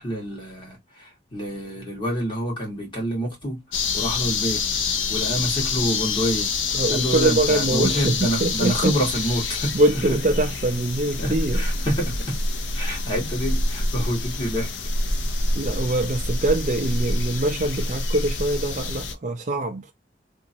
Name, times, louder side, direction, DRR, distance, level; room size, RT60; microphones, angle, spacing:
voice 1, 0.0-4.6 5.1-6.5 6.9-10.2 11.2-12.4 12.7-14.7, equal, 25° left, 1.5 m, -27 dB
sound 1, 3.7-19.1, left 3 dB, 75° left, 0.6 m, -26 dB
voice 2, 6.7-9.0 9.7-11.6 15.5-19.9, right 2 dB, 40° right, 0.4 m, -23 dB
2.9 x 2.6 x 2.7 m
head